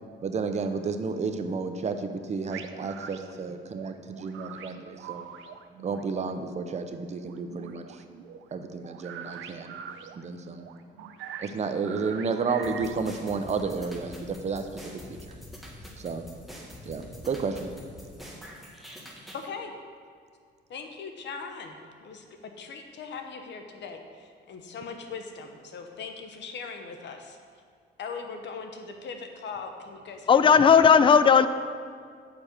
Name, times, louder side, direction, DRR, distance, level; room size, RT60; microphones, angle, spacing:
voice 1, 0.2-5.3 5.8-7.9 8.5-9.8 10.2-10.6 11.4-14.7 16.0-16.2 16.9-17.7, right 4 dB, 35° right, 7 dB, 0.6 m, -31 dB
sound 1, 2.5-13.6, right 7 dB, 80° right, 0.5 m, -44 dB
sound 2, 12.6-19.5, left 1 dB, ahead, 1.3 m, -45 dB
voice 2, 19.3-19.7 20.7-27.4 28.0-30.9, left 5 dB, 65° left, 5 dB, 0.9 m, -40 dB
voice 3, 30.3-31.5, left 6 dB, 25° left, 12 dB, 0.3 m, -16 dB
7.0 x 4.3 x 6.5 m, 2.1 s
cardioid pair, 90°, 20 cm